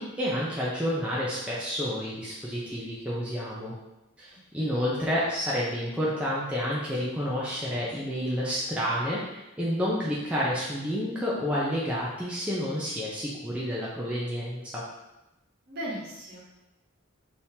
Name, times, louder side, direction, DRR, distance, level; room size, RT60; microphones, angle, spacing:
voice 1, 0.0-3.7 4.2-4.3 4.5-14.8, equal, 5° right, -7 dB, 0.5 m, -29 dB
voice 2, 4.3-4.9 15.7-16.4, equal, 50° right, -6 dB, 1.0 m, -38 dB
3.6 x 2.8 x 2.7 m, 0.95 s
head